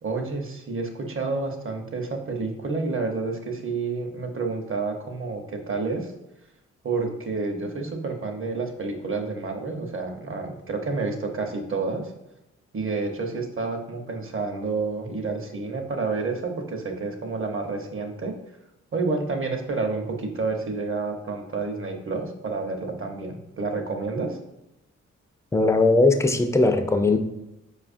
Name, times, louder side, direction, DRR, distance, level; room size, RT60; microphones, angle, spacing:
voice 1, 0.0-6.1 6.8-12.1 12.7-18.3 18.9-24.4, right 3 dB, 45° right, 3 dB, 0.8 m, -29 dB
voice 2, 25.5-27.2, left 2 dB, 10° left, 7 dB, 0.4 m, -19 dB
4.7 x 2.4 x 2.5 m, 0.89 s
supercardioid pair, 45°, 30 cm